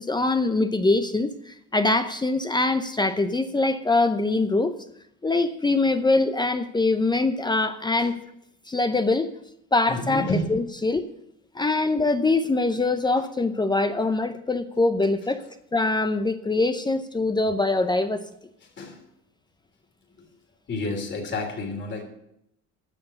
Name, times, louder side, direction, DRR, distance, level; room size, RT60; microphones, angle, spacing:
voice 1, 0.0-4.7 5.2-8.1 8.7-9.3 9.7-11.0 11.6-15.4 15.7-18.2, left 2 dB, 15° left, 9 dB, 0.7 m, -23 dB
voice 2, 9.9-10.5 11.5-11.6 18.6-19.0 20.2-20.3 20.7-22.0, left 2 dB, 40° left, 2 dB, 3.1 m, -30 dB
9.9 x 6.7 x 8.8 m, 0.77 s
cardioid pair, 110°, 29 cm